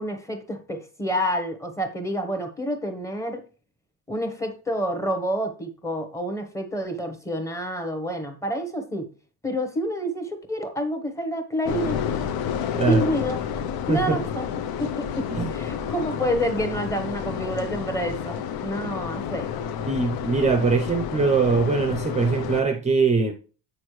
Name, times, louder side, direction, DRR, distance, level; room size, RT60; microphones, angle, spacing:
voice 1, 0.0-3.4 4.1-9.1 9.4-12.0 12.9-13.4 13.9-14.4 14.8-19.5, equal, 10° left, 1.0 m, -28 dB
sound 1, 11.7-22.6, left 8 dB, 65° left, 0.8 m, -30 dB
voice 2, 19.9-23.3, right 4 dB, 20° right, 0.6 m, -22 dB
8.2 x 6.3 x 3.1 m
cardioid pair, 175°, 40 cm